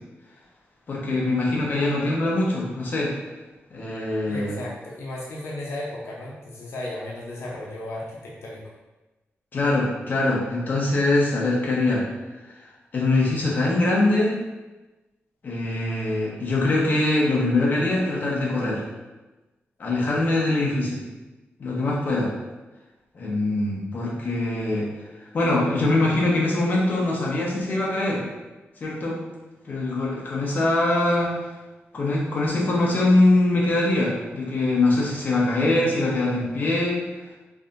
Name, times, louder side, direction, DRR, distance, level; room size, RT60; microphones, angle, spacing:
voice 1, 0.9-3.1 3.7-4.5 9.5-12.0 12.9-14.4 15.4-18.8 19.8-21.0 21.6-22.3 23.1-24.9 25.3-28.2 28.8-29.2 29.6-31.3 31.9-37.0, left 2 dB, 45° left, -4 dB, 0.9 m, -23 dB
voice 2, 4.3-8.6, left 1 dB, 80° left, -4 dB, 0.6 m, -35 dB
4.8 x 2.6 x 2.5 m, 1.1 s
wide cardioid pair, 170°, 4 cm